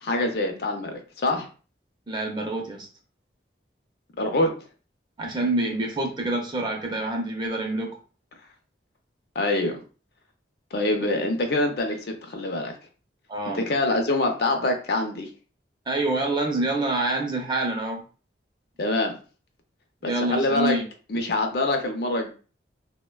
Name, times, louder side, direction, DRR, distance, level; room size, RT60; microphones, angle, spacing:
voice 1, 0.0-1.5 4.2-4.5 9.4-9.8 10.7-12.7 13.5-15.3 18.8-19.1 20.0-20.8 21.1-22.3, left 2 dB, 60° left, 4 dB, 0.5 m, -25 dB
voice 2, 2.1-2.9 5.2-8.0 13.3-13.6 15.9-18.0 20.0-20.9, right 2 dB, 25° right, 1 dB, 0.5 m, -26 dB
3.2 x 2.1 x 2.2 m, 0.37 s
head